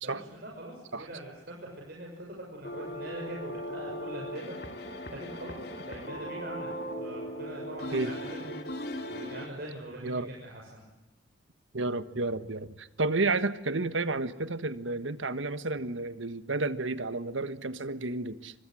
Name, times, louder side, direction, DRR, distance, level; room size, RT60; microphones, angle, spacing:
voice 1, 0.0-4.8 5.1-6.7 7.0-10.8, right 1 dB, 50° right, -1 dB, 6.6 m, -43 dB
sound 1, 2.6-9.5, equal, 50° left, 3.1 m, -38 dB
voice 2, 11.7-18.5, right 3 dB, 75° right, 12 dB, 1.5 m, -31 dB
29.0 x 25.0 x 7.8 m, 1.0 s
head